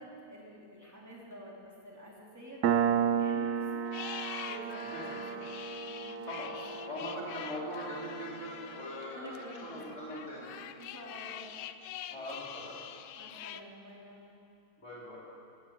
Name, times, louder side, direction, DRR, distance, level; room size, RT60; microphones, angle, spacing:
voice 1, 0.0-3.9 4.4-5.4 5.8-7.0 9.1-10.0 10.8-11.5 13.2-14.3, equal, 10° right, -4 dB, 3.1 m, -49 dB
Piano, 2.6-9.8, right 8 dB, 65° right, 1.0 m, -34 dB
sound 1, 3.9-13.6, left 11 dB, 85° left, 1.4 m, -45 dB
voice 2, 6.3-10.6 12.1-12.8 14.8-15.2, left 1 dB, 35° left, -5 dB, 4.8 m, -41 dB
16.0 x 9.7 x 8.8 m, 2.5 s
omnidirectional pair, 2.2 m